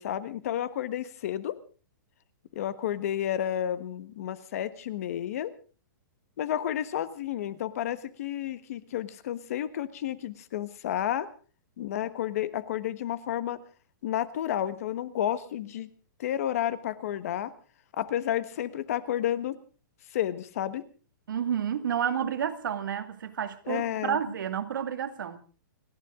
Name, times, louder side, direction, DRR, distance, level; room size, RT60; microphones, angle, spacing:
voice 1, 0.0-1.5 2.5-5.5 6.4-11.3 11.8-13.6 14.0-15.9 16.2-17.5 18.0-19.5 20.1-20.8 23.7-24.2, left 11 dB, 45° left, 1.3 m, -31 dB
voice 2, 21.3-25.4, right 8 dB, 75° right, 2.1 m, -30 dB
30.0 x 11.0 x 3.7 m
hypercardioid pair, 170°, 11 cm